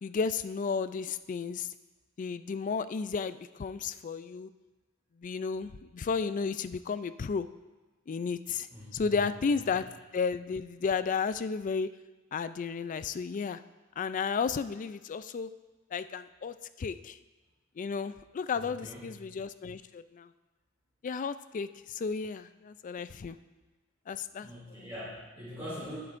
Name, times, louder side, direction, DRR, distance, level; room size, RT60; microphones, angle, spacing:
voice 1, 0.0-1.7 2.2-4.5 5.2-7.5 8.1-9.9 10.1-11.9 12.3-13.6 14.0-15.5 15.9-17.2 17.8-20.3 21.0-23.4 24.1-24.5, left 5 dB, 35° left, 13 dB, 0.3 m, -33 dB
voice 2, 8.7-9.3 18.6-19.0 24.4-26.0, equal, 15° right, -10 dB, 2.7 m, -43 dB
19.5 x 7.7 x 2.6 m, 1.2 s
head